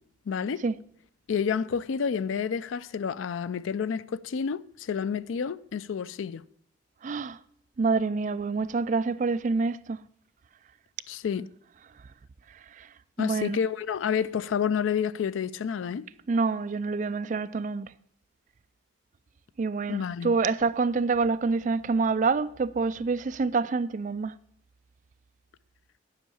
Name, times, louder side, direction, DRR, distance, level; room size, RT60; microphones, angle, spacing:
voice 1, 0.3-0.6 1.3-6.4 11.1-11.5 13.2-16.1 19.9-20.4, left 7 dB, 85° left, 0.4 m, -29 dB
voice 2, 7.0-7.4 7.8-10.0 12.5-13.6 16.3-17.9 19.6-24.3, right 4 dB, 40° right, 0.3 m, -27 dB
10.0 x 5.6 x 7.0 m
head